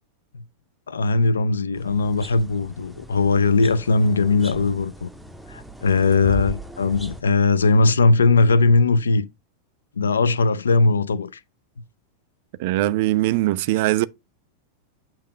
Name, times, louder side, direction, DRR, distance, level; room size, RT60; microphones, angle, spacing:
voice 1, 0.9-5.1 5.5-9.3 10.0-11.4, left 3 dB, 70° left, 0.4 m, -19 dB
sound 1, 1.7-7.2, right 1 dB, ahead, 0.6 m, -37 dB
voice 2, 12.6-14.1, right 16 dB, 50° right, 0.4 m, -21 dB
8.4 x 2.9 x 5.0 m
figure-of-eight pair, 90°, 0 cm